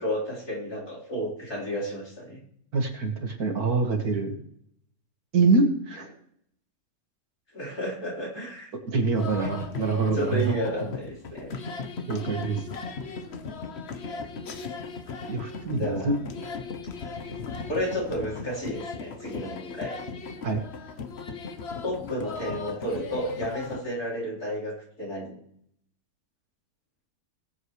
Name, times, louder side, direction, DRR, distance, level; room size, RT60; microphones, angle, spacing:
voice 1, 0.0-2.4 7.5-8.7 10.1-11.5 15.8-16.1 17.7-19.9 21.8-25.4, equal, 85° left, -6 dB, 4.8 m, -32 dB
voice 2, 2.7-4.4 5.3-6.1 8.9-10.6 12.1-12.6 15.3-16.1 20.4-20.6, right 4 dB, 90° right, 3 dB, 2.4 m, -25 dB
sound 1, 9.2-23.8, left 4 dB, 50° left, 1.1 m, -37 dB
19.5 x 8.0 x 3.2 m, 0.71 s
omnidirectional pair, 1.6 m